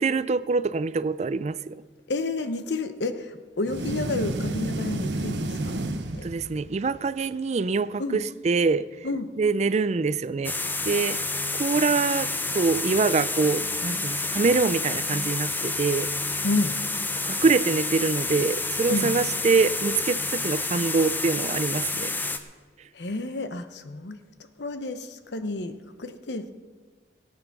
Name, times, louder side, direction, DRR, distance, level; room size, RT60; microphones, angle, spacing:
voice 1, 0.0-1.8 6.2-8.9 9.4-10.6 10.9-11.2 11.5-16.4 17.3-22.1, right 4 dB, 40° right, 16 dB, 0.4 m, -25 dB
voice 2, 2.1-6.3 8.0-8.2 9.0-9.3 16.4-16.8 18.9-19.1 22.9-24.2 24.6-26.5, left 2 dB, 80° left, 10 dB, 0.9 m, -30 dB
sound 1, 3.6-6.8, right 2 dB, 85° right, 1.0 m, -31 dB
sound 2, 10.4-22.4, left 3 dB, 10° left, 0.7 m, -29 dB
17.5 x 8.9 x 6.0 m, 1.4 s
head